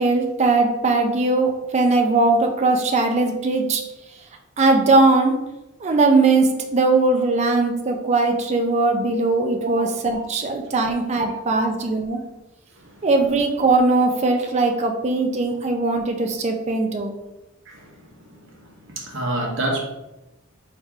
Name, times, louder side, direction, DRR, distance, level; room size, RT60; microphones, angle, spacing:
voice 1, 0.0-3.8 4.6-5.3 5.8-12.2 13.0-17.1, right 3 dB, 35° right, 3 dB, 0.5 m, -20 dB
voice 2, 11.2-11.6 12.8-13.0 17.7-18.0 18.2-19.8, right 1 dB, 65° right, 1 dB, 1.0 m, -29 dB
3.7 x 2.8 x 4.5 m, 0.96 s
head